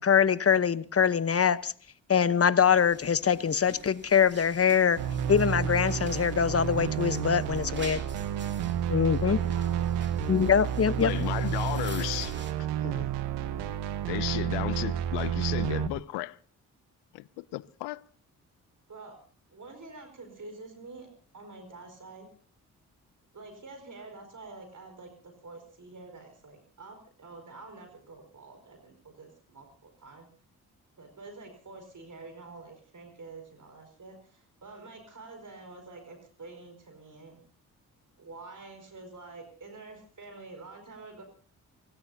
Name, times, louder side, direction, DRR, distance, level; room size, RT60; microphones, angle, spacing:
voice 1, 0.0-1.7 2.1-5.0 5.3-8.0 8.9-9.4 10.3-11.1, left 7 dB, 35° left, 1.0 m, -23 dB
sound 1, 2.7-12.5, right 3 dB, 25° right, 2.7 m, -47 dB
sound 2, 5.0-15.9, right 9 dB, 85° right, 1.1 m, -30 dB
voice 2, 9.1-10.1 18.9-19.2 19.5-21.1 21.3-22.3 23.3-30.3 31.0-37.4 38.2-41.2, right 3 dB, 50° right, 4.8 m, -47 dB
voice 3, 11.0-12.4 12.8-13.1 14.1-16.4 17.1-18.0, left 19 dB, 80° left, 0.6 m, -34 dB
28.5 x 16.5 x 2.8 m
hypercardioid pair, 40°, 40 cm